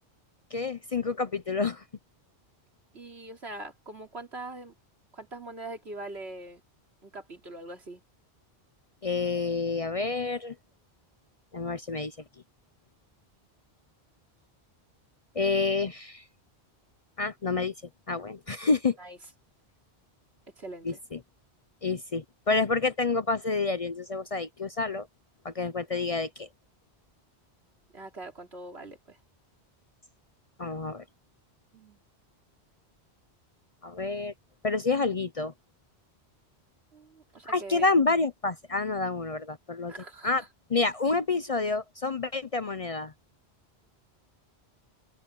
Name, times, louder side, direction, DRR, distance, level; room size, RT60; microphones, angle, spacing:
voice 1, 0.5-1.8 9.0-10.5 11.5-12.1 15.4-16.2 17.2-17.7 18.1-19.0 20.8-21.2 21.8-25.1 25.4-26.5 30.6-31.0 33.8-34.3 34.6-35.5 37.5-39.9 40.2-40.4 40.7-43.1, left 3 dB, 40° left, 0.7 m, -28 dB
voice 2, 2.9-4.7 5.1-6.6 7.0-8.0 19.0-19.2 20.6-21.0 27.9-29.2 31.7-32.0 36.9-37.9 39.9-40.5, right 2 dB, 75° right, 3.4 m, -42 dB
open air
omnidirectional pair, 1.1 m